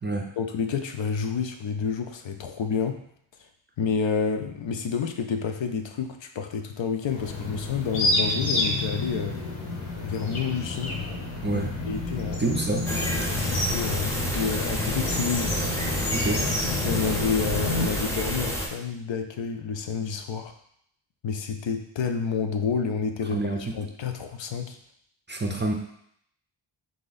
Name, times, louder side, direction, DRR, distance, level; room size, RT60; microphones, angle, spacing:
voice 1, 0.4-3.0 3.8-9.4 10.0-11.0 11.5-11.6 11.9-12.4 13.3-15.5 16.8-20.5 21.2-23.4 23.7-24.8, left 6 dB, 65° left, 6 dB, 0.5 m, -29 dB
sound 1, 7.1-17.9, left 2 dB, 80° left, 0.9 m, -29 dB
voice 2, 11.4-11.7 12.4-12.9 16.1-16.4 23.3-23.6 25.3-25.7, right 2 dB, 25° right, 2 dB, 0.4 m, -27 dB
sound 2, 12.9-18.7, equal, 5° left, 0.7 m, -29 dB
3.8 x 2.8 x 4.0 m, 0.70 s
wide cardioid pair, 90°, 49 cm